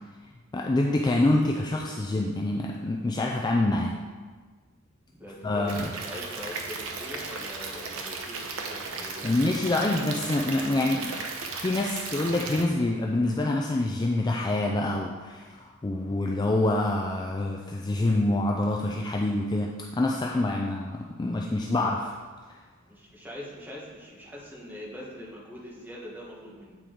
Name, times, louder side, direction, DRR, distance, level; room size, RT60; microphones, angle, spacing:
voice 1, 0.5-3.9 5.4-5.9 9.2-11.2 11.6-22.1, left 2 dB, 20° left, 0 dB, 0.4 m, -26 dB
voice 2, 5.1-9.3 22.9-26.8, left 1 dB, 10° right, -5 dB, 1.3 m, -42 dB
Stream / Liquid, 5.7-12.6, right 4 dB, 70° right, 0.8 m, -36 dB
8.3 x 4.5 x 3.8 m, 1.4 s
head